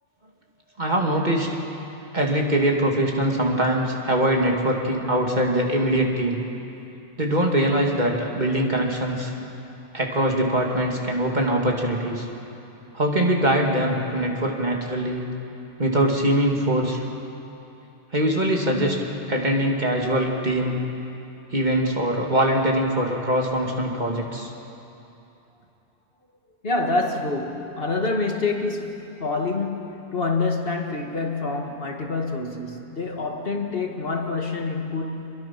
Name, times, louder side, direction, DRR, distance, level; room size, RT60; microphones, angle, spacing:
voice 1, 0.8-1.5 2.1-6.4 7.2-9.3 9.9-12.3 12.9-15.3 15.8-17.0 18.1-19.0 19.3-20.8 21.5-24.5, right 1 dB, 40° right, 0 dB, 2.4 m, -22 dB
voice 2, 26.6-35.3, left 3 dB, 55° left, 2 dB, 1.9 m, -27 dB
27.5 x 22.0 x 5.9 m, 2.9 s
omnidirectional pair, 1.2 m